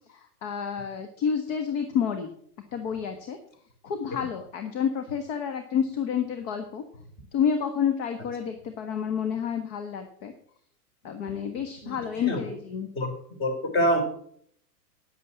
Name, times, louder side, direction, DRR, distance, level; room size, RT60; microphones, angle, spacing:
voice 1, 0.1-2.3 2.7-3.4 3.8-6.8 7.3-10.3 11.0-12.9, left 7 dB, 45° left, 7 dB, 1.5 m, -29 dB
voice 2, 13.4-14.0, equal, 25° left, 5 dB, 3.9 m, -25 dB
9.6 x 8.2 x 7.1 m, 0.64 s
hypercardioid pair, 120°, 46 cm